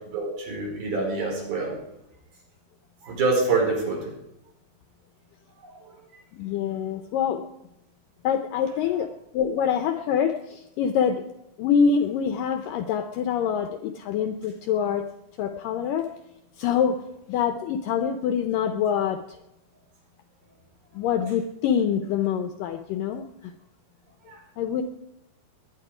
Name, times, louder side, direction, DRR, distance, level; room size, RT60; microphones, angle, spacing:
voice 1, 0.1-1.8 3.0-4.1 5.8-5.9 24.3-24.4, right 3 dB, 65° right, -2 dB, 6.6 m, -26 dB
voice 2, 6.3-7.4 8.2-9.1 9.3-11.2 11.6-15.1 15.4-16.1 16.6-17.0 17.3-19.4 20.9-23.5 24.6-24.8, left 7 dB, 80° left, 8 dB, 2.0 m, -25 dB
21.0 x 10.0 x 4.9 m, 0.86 s
omnidirectional pair, 4.6 m